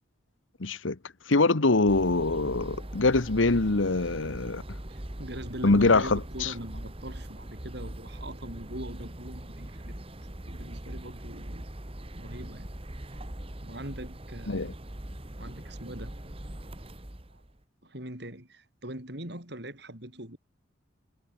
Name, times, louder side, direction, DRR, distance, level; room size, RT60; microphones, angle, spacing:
voice 1, 0.6-1.0 1.3-4.6 5.6-6.5 14.5-14.7, left 3 dB, 90° left, 1.3 m, -24 dB
sound 1, 1.9-17.6, right 1 dB, 30° right, 1.8 m, -41 dB
voice 2, 4.9-10.0 10.5-11.6 12.2-12.7 13.1-13.2 13.6-14.7 15.4-16.1 17.3-17.4 17.8-20.4, right 1 dB, 60° right, 6.5 m, -41 dB
head